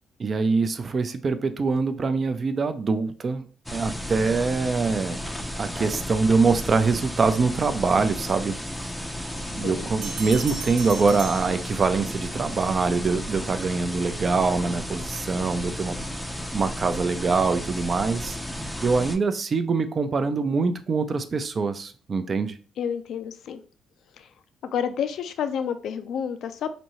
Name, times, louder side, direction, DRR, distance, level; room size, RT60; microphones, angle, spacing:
voice 1, 0.2-5.2 5.6-8.6 9.5-16.0 16.5-18.4 18.8-22.6, right 4 dB, 40° right, 9 dB, 0.5 m, -24 dB
sound 1, 3.7-19.2, equal, 5° left, 0.5 m, -33 dB
Bell, 10.0-12.3, right 4 dB, 80° right, 0.9 m, -37 dB
voice 2, 22.8-23.6 24.2-24.3 24.6-26.7, left 8 dB, 70° left, 10 dB, 0.4 m, -29 dB
5.2 x 2.7 x 3.0 m, 0.39 s
cardioid pair, 90°, 0 cm